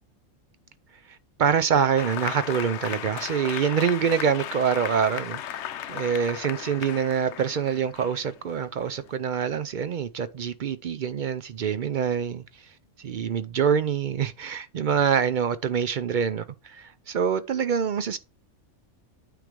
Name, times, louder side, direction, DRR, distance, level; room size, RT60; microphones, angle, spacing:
voice 1, 1.1-5.4 5.9-12.7 13.0-18.2, right 7 dB, 65° right, 0.5 m, -25 dB
Applause, 2.0-9.2, left 10 dB, 65° left, 0.9 m, -36 dB
9.2 x 3.2 x 5.1 m
omnidirectional pair, 1.3 m